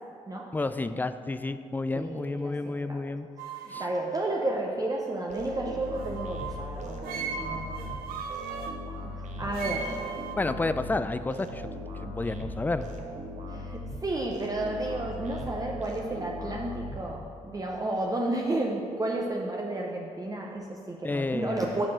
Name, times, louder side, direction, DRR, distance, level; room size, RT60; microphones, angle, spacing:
voice 1, 0.5-3.3 3.7-3.8 10.4-11.6 12.0-12.9 21.0-21.8, left 2 dB, 10° left, 12 dB, 0.3 m, -30 dB
voice 2, 1.9-3.0 3.6-8.0 9.2-10.3 13.5-21.8, right 2 dB, 25° right, -1 dB, 0.7 m, -32 dB
sound 1, 3.4-6.7 7.0-8.8 9.5-10.4, right 6 dB, 75° right, 0.5 m, -38 dB
sound 2, 5.3-17.5, left 1 dB, 50° right, 0.9 m, -39 dB
5.3 x 5.0 x 6.1 m, 2.4 s
hypercardioid pair, 50°, 15 cm